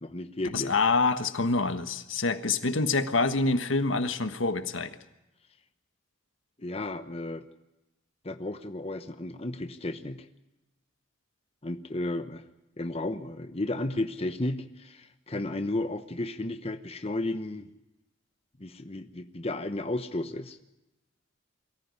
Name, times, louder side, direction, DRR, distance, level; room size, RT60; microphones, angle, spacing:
voice 1, 0.0-0.7 6.6-7.5 8.2-10.3 11.6-12.4 12.8-17.7 18.6-20.6, left 2 dB, 30° left, 8 dB, 1.0 m, -33 dB
voice 2, 0.5-5.0, left 3 dB, 80° left, 10 dB, 1.5 m, -26 dB
23.0 x 14.5 x 9.6 m, 0.96 s
head